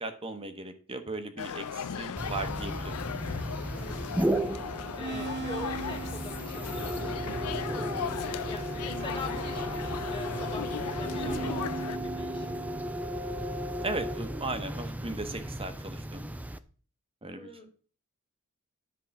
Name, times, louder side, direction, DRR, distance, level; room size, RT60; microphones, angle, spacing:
voice 1, 0.0-2.9 13.8-16.3 17.2-17.5, right 2 dB, 25° right, 8 dB, 1.1 m, -37 dB
sound 1, 1.4-12.0, left 7 dB, 85° left, 0.5 m, -37 dB
sound 2, 2.2-16.6, right 1 dB, 5° right, 0.5 m, -35 dB
voice 2, 3.7-4.3 5.0-7.7 8.4-12.7 17.3-17.7, left 2 dB, 25° left, 5 dB, 1.8 m, -44 dB
sound 3, 5.0-10.7 11.0-16.1, right 3 dB, 50° right, 1.0 m, -42 dB
10.5 x 4.8 x 7.0 m, 0.41 s
head